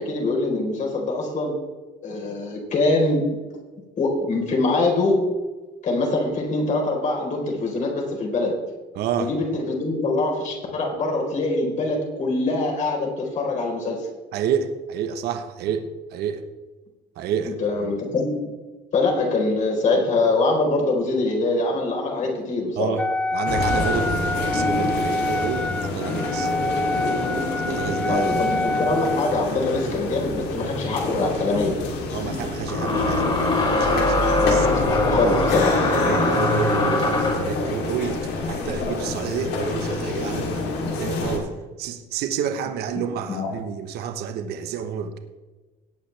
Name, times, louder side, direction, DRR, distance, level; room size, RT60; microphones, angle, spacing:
voice 1, 0.0-1.6 2.0-3.3 4.0-5.3 5.8-8.6 9.2-14.1 17.4-18.5 18.9-23.0 28.1-31.8 34.4-36.7 42.9-43.5, left 2 dB, 45° left, 0 dB, 4.2 m, -24 dB
voice 2, 9.0-9.3 14.3-15.8 16.1-16.4 17.2-17.9 22.8-23.0 23.3-26.5 27.6-28.4 32.1-35.0 35.9-41.5 41.8-45.2, right 8 dB, 70° right, 8 dB, 1.2 m, -29 dB
Wind instrument woodwind instrument, 23.0-29.4, left 2 dB, 5° left, 0.3 m, -26 dB
sound 1, 23.5-41.4, left 2 dB, 75° left, 3.2 m, -27 dB
sound 2, 30.7-30.8 32.7-37.5, left 2 dB, 30° left, 4.0 m, -22 dB
18.0 x 8.7 x 3.4 m, 1.2 s
cardioid pair, 115°, 17 cm